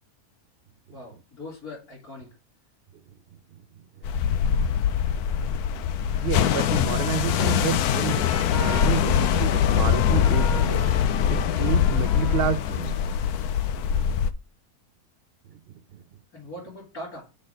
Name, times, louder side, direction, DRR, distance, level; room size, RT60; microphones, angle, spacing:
voice 1, 0.9-2.3 16.3-17.3, left 1 dB, 75° left, 3.8 m, -40 dB
sound 1, 4.0-14.3, left 8 dB, 90° left, 1.2 m, -23 dB
voice 2, 6.2-10.8 11.3-13.0, right 9 dB, 70° right, 0.5 m, -30 dB
Trumpet, 6.3-13.3, left 5 dB, 50° left, 1.0 m, -38 dB
6.3 x 4.2 x 6.5 m
omnidirectional pair, 1.6 m